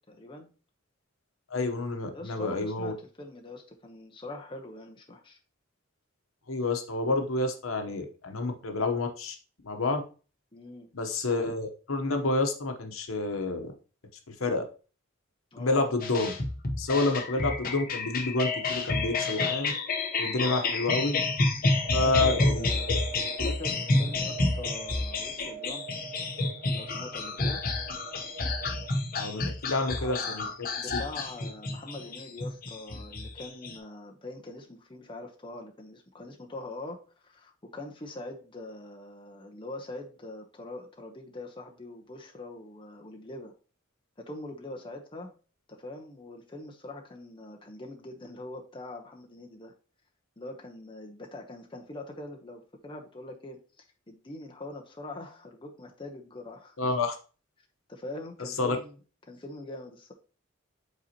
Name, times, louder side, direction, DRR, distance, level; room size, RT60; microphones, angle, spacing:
voice 1, 0.1-0.5 2.1-5.4 10.5-10.9 15.5-15.9 20.4-20.8 22.0-23.1 23.4-25.9 26.7-27.6 29.8-43.5 44.2-45.3 45.7-49.7 50.4-56.9 57.9-58.9 59.2-60.1, left 2 dB, 25° left, 1 dB, 0.9 m, -43 dB
voice 2, 1.5-2.9 6.5-9.4 9.6-10.0 10.9-13.7 14.3-14.6 15.6-16.3 16.8-19.7 20.2-21.1 21.9-22.7 29.1-30.4 56.8-57.2 58.6-58.8, left 2 dB, 85° left, 6 dB, 1.0 m, -29 dB
sound 1, 16.0-33.8, left 3 dB, 45° left, 0.9 m, -30 dB
sound 2, 21.7-28.9, right 7 dB, 75° right, 1.0 m, -45 dB
8.0 x 4.2 x 2.9 m, 0.36 s
head